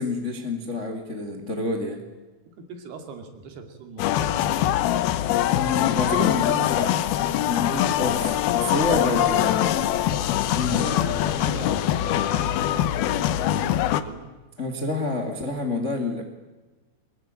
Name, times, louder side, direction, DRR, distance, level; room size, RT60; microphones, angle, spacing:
voice 1, 0.0-2.0 5.6-9.9 10.5-10.8 14.6-16.2, left 2 dB, 45° left, 5 dB, 0.9 m, -28 dB
voice 2, 2.6-4.4 7.4-7.6 8.6-9.3 10.5-12.5 14.0-14.3, right 5 dB, 60° right, 5 dB, 4.3 m, -40 dB
sound 1, 4.0-14.0, left 12 dB, 80° left, 2.2 m, -23 dB
23.5 x 22.5 x 8.9 m, 1.2 s
omnidirectional pair, 5.7 m